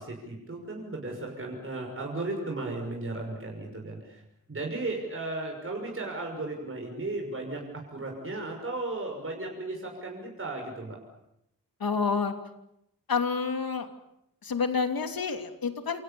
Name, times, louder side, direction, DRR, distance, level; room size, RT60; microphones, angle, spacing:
voice 1, 0.0-4.2 4.5-7.6 7.9-11.0, right 2 dB, 40° right, 1 dB, 6.0 m, -35 dB
voice 2, 11.8-12.3 13.1-13.9 14.4-16.0, left 5 dB, 90° left, 6 dB, 2.9 m, -28 dB
28.0 x 27.5 x 7.0 m, 0.81 s
wide cardioid pair, 120°, 34 cm